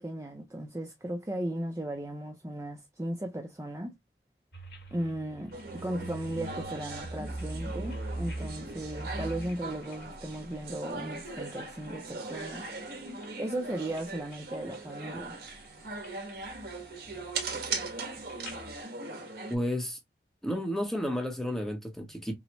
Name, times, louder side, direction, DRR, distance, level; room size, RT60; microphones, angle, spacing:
voice 1, 0.0-4.0 4.9-12.7 13.4-15.4, right 1 dB, 15° right, 0.4 m, -36 dB
sound 1, 4.5-11.9 12.4-13.4 13.8-14.1 14.3-15.2 15.5-16.1 16.4-18.8, right 2 dB, 70° left, 1.3 m, -42 dB
sound 2, 5.5-19.5, right 3 dB, 60° right, 1.4 m, -40 dB
voice 2, 19.5-20.0 20.4-22.3, equal, ahead, 0.8 m, -32 dB
6.0 x 2.1 x 3.0 m
head